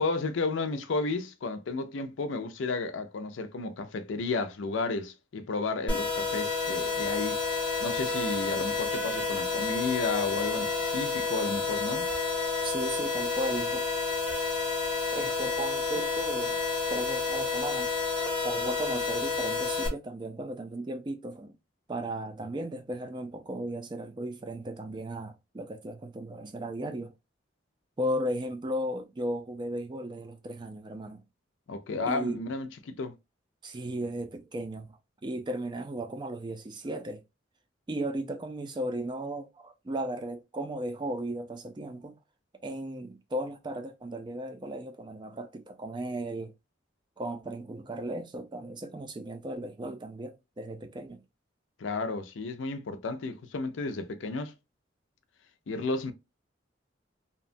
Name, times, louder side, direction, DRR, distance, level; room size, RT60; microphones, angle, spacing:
voice 1, 0.0-7.4 7.8-12.1 31.7-33.1 51.8-54.5 55.7-56.1, left 3 dB, 80° left, 0.5 m, -32 dB
sound 1, 5.9-19.9, left 4 dB, 5° left, 0.8 m, -30 dB
voice 2, 12.6-13.9 15.1-16.6 16.9-17.9 18.4-21.6 21.9-27.1 28.0-31.2 32.0-32.5 33.6-37.2 37.9-42.2 42.6-46.5 47.2-51.2, right 1 dB, 25° right, 0.3 m, -36 dB
2.8 x 2.1 x 2.5 m
head